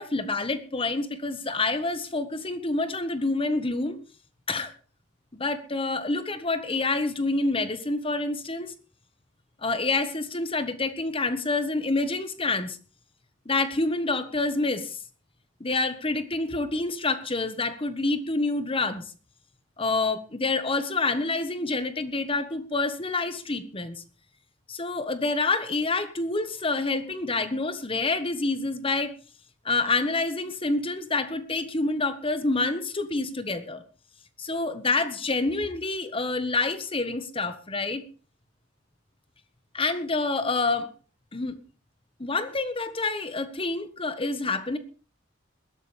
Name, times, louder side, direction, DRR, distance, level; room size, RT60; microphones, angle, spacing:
voice 1, 0.0-4.0 4.5-4.7 5.3-8.7 9.6-12.8 13.4-15.0 15.6-19.1 19.8-24.0 24.7-29.1 29.6-33.8 34.4-38.0 39.7-40.9 41.3-41.5 42.2-44.8, left 3 dB, 30° left, 1.4 m, -27 dB
21.0 x 12.5 x 3.4 m
head